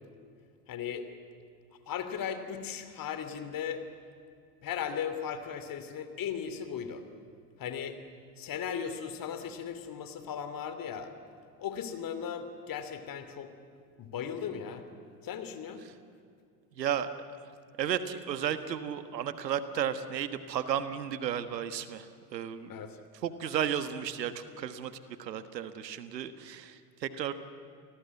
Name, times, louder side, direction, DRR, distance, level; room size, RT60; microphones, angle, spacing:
voice 1, 0.7-1.1 1.9-3.8 4.6-7.0 7.6-8.0 8.4-11.1 11.6-13.5 14.0-14.8 15.2-15.8 22.7-23.0, left 8 dB, 45° left, 9 dB, 2.9 m, -37 dB
voice 2, 16.7-17.1 17.8-22.7 23.2-24.9 25.2-27.3, right 9 dB, 85° right, 12 dB, 1.5 m, -33 dB
29.0 x 19.0 x 8.4 m, 2.3 s
hypercardioid pair, 75°, 49 cm